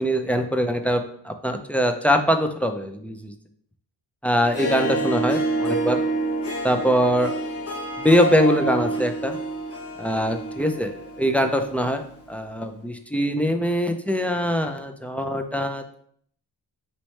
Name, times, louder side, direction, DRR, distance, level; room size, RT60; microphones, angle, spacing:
voice 1, 0.0-3.3 4.2-6.0 6.6-7.3 8.0-9.4 10.0-10.9 11.2-12.0 12.3-16.1, equal, 5° left, 6 dB, 0.3 m, -22 dB
Harp, 4.4-11.8, right 2 dB, 30° left, 0.8 m, -28 dB
4.2 x 3.0 x 3.2 m, 0.64 s
cardioid pair, 50°, 48 cm